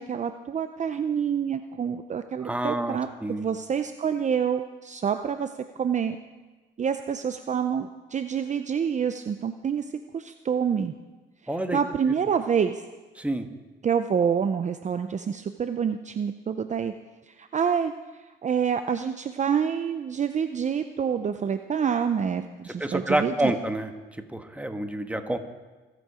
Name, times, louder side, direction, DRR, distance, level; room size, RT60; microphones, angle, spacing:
voice 1, 0.0-5.5 5.8-6.2 6.8-9.8 10.1-10.9 11.7-12.8 13.8-16.9 17.3-17.9 18.4-23.5, right 7 dB, 35° right, 9 dB, 0.6 m, -27 dB
voice 2, 2.4-3.4 11.5-11.8 13.2-13.5 22.7-23.9 24.3-25.4, right 1 dB, 5° right, 6 dB, 1.4 m, -28 dB
24.0 x 8.4 x 5.0 m, 1.3 s
cardioid pair, 90°, 20 cm